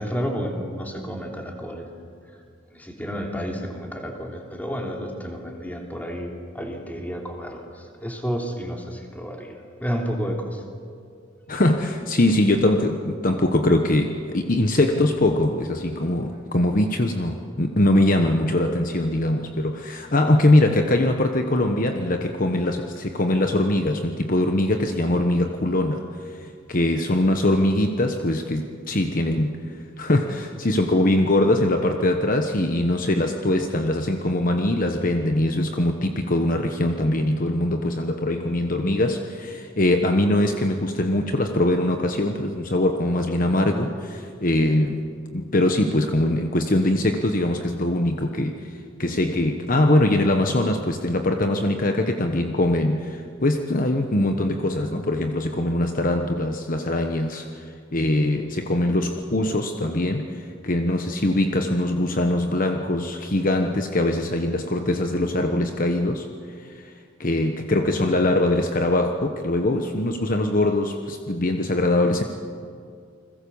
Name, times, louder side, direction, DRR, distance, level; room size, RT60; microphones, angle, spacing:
voice 1, 0.0-1.9 2.3-2.4 2.7-10.6, equal, 10° left, 1 dB, 3.1 m, -31 dB
voice 2, 11.5-29.6 30.0-45.1 45.3-48.7 49.0-66.3 66.6-66.9 67.2-72.2, left 1 dB, 45° left, 5 dB, 1.2 m, -22 dB
29.5 x 21.5 x 7.1 m, 2.2 s
head